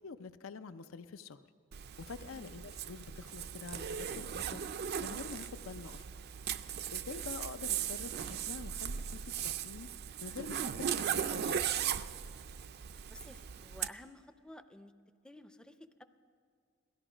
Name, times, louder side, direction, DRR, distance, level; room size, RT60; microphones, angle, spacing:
voice 1, 0.0-1.4 2.1-4.6 5.0-6.0 6.9-9.9 10.2-11.6, left 5 dB, 75° left, 12 dB, 0.5 m, -46 dB
Zipper (clothing), 1.7-13.9, right 8 dB, 50° right, 0.4 m, -38 dB
voice 2, 13.1-14.9 15.2-16.0, left 1 dB, 5° left, 10 dB, 0.5 m, -53 dB
17.0 x 13.5 x 5.0 m, 2.3 s
head